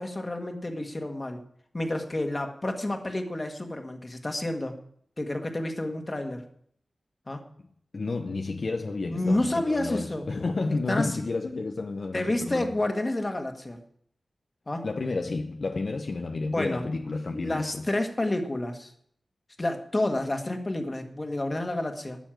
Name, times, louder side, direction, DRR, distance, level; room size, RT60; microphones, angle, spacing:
voice 1, 0.0-1.4 1.7-4.7 5.2-6.4 7.3-7.4 9.1-10.2 10.9-11.1 12.1-13.8 14.7-14.9 16.4-16.8 17.3-18.9 19.6-22.2, left 1 dB, 30° left, 1.8 m, -29 dB
voice 2, 7.9-12.7 14.8-17.9, left 3 dB, 55° left, 0.9 m, -31 dB
12.5 x 7.1 x 9.0 m
wide cardioid pair, 115°, 0 cm